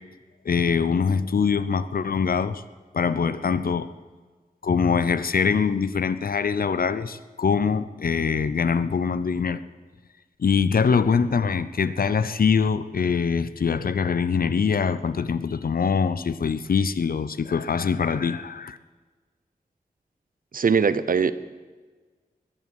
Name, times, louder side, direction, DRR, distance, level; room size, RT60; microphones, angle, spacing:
voice 1, 0.4-2.6 2.9-3.9 4.6-9.6 10.4-18.8, left 6 dB, 70° left, 0.7 m, -23 dB
voice 2, 20.5-21.3, right 6 dB, 65° right, 0.7 m, -21 dB
21.0 x 7.4 x 7.9 m
wide cardioid pair, 75°, 16 cm